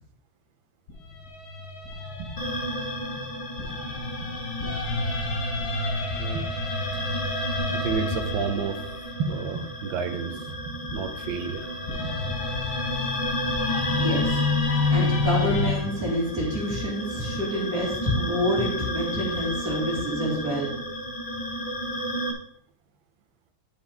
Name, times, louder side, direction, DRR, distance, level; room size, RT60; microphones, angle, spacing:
sound 1, 0.9-10.0 10.9-15.8, left 3 dB, 55° left, 1.7 m, -29 dB
sound 2, 2.4-22.3, equal, 30° left, 0.6 m, -33 dB
voice 1, 6.2-6.5 7.7-8.8 9.2-10.5 10.8-11.7 12.0-12.2 13.8-13.9, right 6 dB, 75° right, 7 dB, 1.6 m, -31 dB
voice 2, 14.0-14.4 14.9-20.7, equal, 50° right, -4 dB, 2.7 m, -27 dB
10.0 x 5.7 x 3.4 m, 0.65 s
omnidirectional pair, 2.1 m